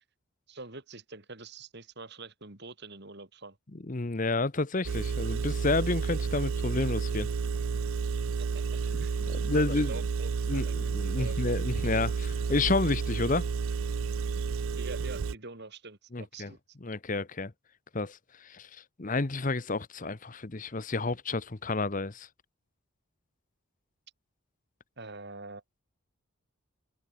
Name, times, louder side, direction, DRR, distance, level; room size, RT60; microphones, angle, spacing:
voice 1, 0.5-3.6 8.4-8.6 8.9-10.9 11.2-11.4 14.8-16.6 25.0-25.6, right 3 dB, 50° right, 2.6 m, -45 dB
voice 2, 3.7-7.3 9.3-9.9 10.5-13.5 16.1-16.5 16.8-17.5 17.9-22.3, left 3 dB, 35° left, 0.9 m, -30 dB
Engine, 4.8-15.3, right 5 dB, 70° right, 0.4 m, -31 dB
open air
head